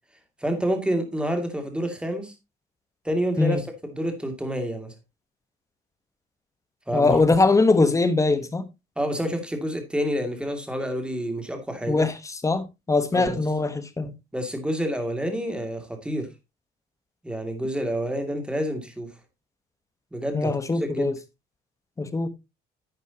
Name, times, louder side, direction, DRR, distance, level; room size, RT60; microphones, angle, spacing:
voice 1, 0.4-2.3 3.0-4.9 6.9-7.2 9.0-12.0 13.1-13.4 14.3-16.3 17.2-19.1 20.1-20.5 20.8-21.1, equal, 5° right, 2.5 m, -28 dB
voice 2, 6.9-8.6 11.9-14.1 20.3-21.2 22.0-22.3, left 3 dB, 20° left, 1.3 m, -22 dB
11.0 x 8.2 x 2.9 m
cardioid pair, 110°, 17 cm